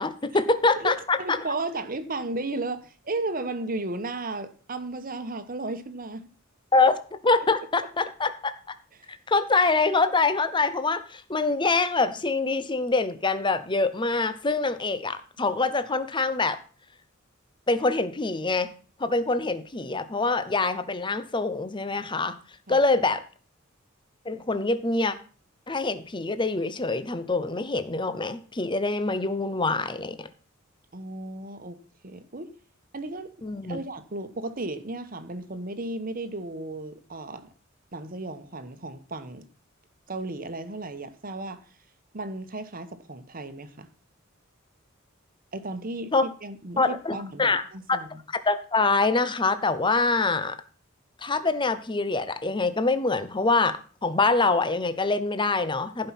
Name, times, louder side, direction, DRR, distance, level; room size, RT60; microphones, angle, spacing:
voice 1, 0.0-1.4 6.7-7.0 7.2-8.5 9.3-16.6 17.7-18.7 19.0-22.4 22.7-23.2 24.2-25.1 25.7-30.3 33.4-33.8 46.1-46.2 46.8-47.6 47.9-48.0 48.5-50.6 51.2-56.1, left 3 dB, 25° left, 0.9 m, -25 dB
voice 2, 0.7-6.3 8.9-9.1 22.7-22.8 30.9-32.5 32.9-33.3 33.7-37.5 37.9-39.5 40.1-41.6 42.1-43.9 45.5-46.1 46.4-48.2, right 2 dB, 45° right, 1.2 m, -34 dB
15.5 x 5.5 x 5.9 m
head